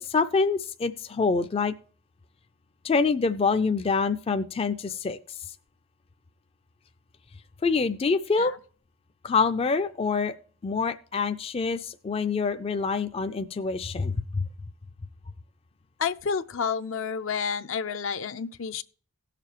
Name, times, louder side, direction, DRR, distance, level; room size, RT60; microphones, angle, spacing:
voice 1, 0.0-1.7 2.8-5.4 7.6-8.5 9.2-10.4 10.6-14.5, left 4 dB, 30° left, 0.3 m, -26 dB
voice 2, 16.0-18.8, left 6 dB, 70° left, 0.6 m, -30 dB
17.5 x 6.7 x 2.9 m
head